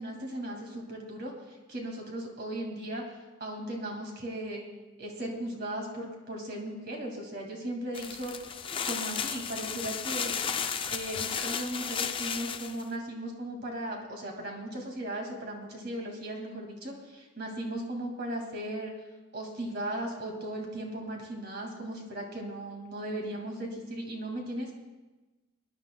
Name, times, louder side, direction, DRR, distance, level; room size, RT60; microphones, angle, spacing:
voice 1, 0.0-3.0 3.4-4.7 5.0-8.3 8.8-10.3 10.9-18.9 19.3-24.7, right 1 dB, 50° right, 1 dB, 2.1 m, -37 dB
sound 1, 7.9-12.8, left 7 dB, 25° left, 0.4 m, -34 dB
22.5 x 10.5 x 2.2 m, 1.2 s
head